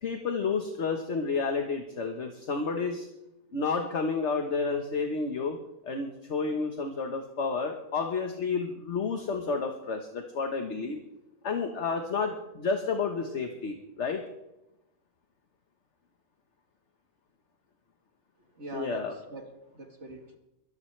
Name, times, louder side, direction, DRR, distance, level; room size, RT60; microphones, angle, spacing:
voice 1, 0.0-3.1 3.5-5.6 5.8-11.0 11.4-14.2 18.7-19.1, left 4 dB, 45° left, 4 dB, 1.5 m, -30 dB
voice 2, 18.5-20.4, right 2 dB, 45° right, 4 dB, 1.9 m, -43 dB
22.0 x 15.0 x 3.3 m, 0.90 s
omnidirectional pair, 1.7 m